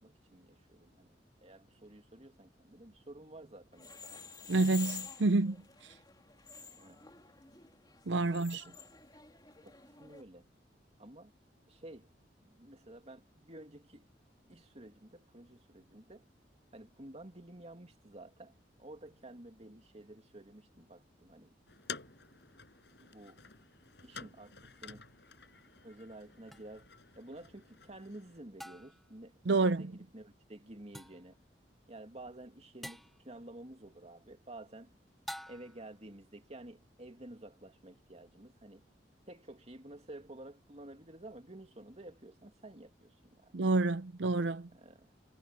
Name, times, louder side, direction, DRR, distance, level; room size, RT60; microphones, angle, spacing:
voice 1, 0.0-4.3 6.8-7.4 8.2-8.4 9.6-10.5 11.0-11.3 11.7-12.1 12.4-14.1 14.5-16.3 16.7-18.5 18.8-21.5 23.0-23.4 24.0-25.0 25.8-26.9 27.2-31.4 31.9-34.9 35.5-38.9 39.3-43.6 44.7-45.1, right 1 dB, 35° right, 2.6 m, -51 dB
sound 1, 3.7-10.2, left 5 dB, 25° left, 3.2 m, -49 dB
voice 2, 4.5-5.6 5.8-5.9 8.1-8.6 29.5-29.9 43.5-44.7, right 3 dB, 85° right, 0.6 m, -28 dB
sound 2, 21.7-28.4, left 6 dB, 70° left, 5.6 m, -51 dB
sound 3, 26.5-26.6 28.6-29.1 30.9-31.3 32.8-33.2 35.3-35.9, equal, ahead, 0.9 m, -47 dB
head